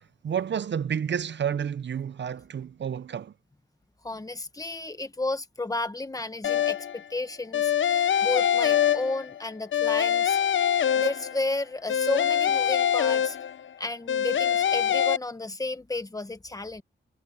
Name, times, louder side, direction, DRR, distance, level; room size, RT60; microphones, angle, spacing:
voice 1, 0.2-3.3, right 8 dB, 65° right, 0.5 m, -30 dB
voice 2, 4.0-10.4 10.9-13.4 13.8-16.8, left 2 dB, 20° left, 1.3 m, -32 dB
sound 1, 6.4-7.0 7.5-9.4 9.7-11.5 11.9-13.7 14.1-15.2, left 9 dB, 75° left, 0.5 m, -24 dB
wide cardioid pair, 140°, 20 cm